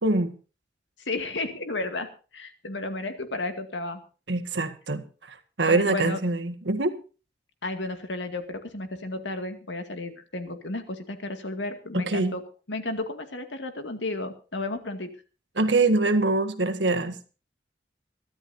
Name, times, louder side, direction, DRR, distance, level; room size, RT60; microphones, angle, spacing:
voice 1, 0.0-0.3 4.3-5.0 5.6-6.9 11.9-12.3 15.6-17.2, right 2 dB, 75° right, 8 dB, 1.8 m, -24 dB
voice 2, 1.0-4.0 5.7-6.2 7.6-12.4 12.7-15.1, left 2 dB, 85° left, 7 dB, 2.2 m, -33 dB
23.0 x 13.0 x 2.8 m, 0.35 s
head